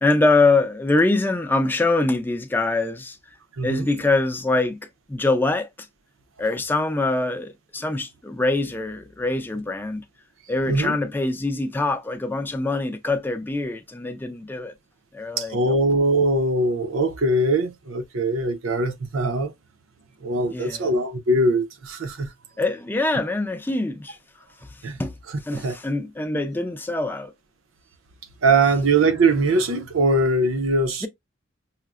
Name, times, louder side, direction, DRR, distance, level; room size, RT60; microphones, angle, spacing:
voice 1, 0.0-3.2 3.6-4.8 5.1-5.9 6.4-10.0 10.5-14.7 15.1-15.8 20.5-20.8 22.6-24.2 24.7-25.1 25.4-27.3 31.0-31.1, left 2 dB, 10° left, 0.4 m, -24 dB
voice 2, 3.6-3.9 10.7-11.0 15.4-19.5 20.2-22.3 24.8-25.0 25.5-25.8 28.4-31.1, right 2 dB, 85° right, 0.6 m, -21 dB
5.6 x 2.0 x 2.3 m
head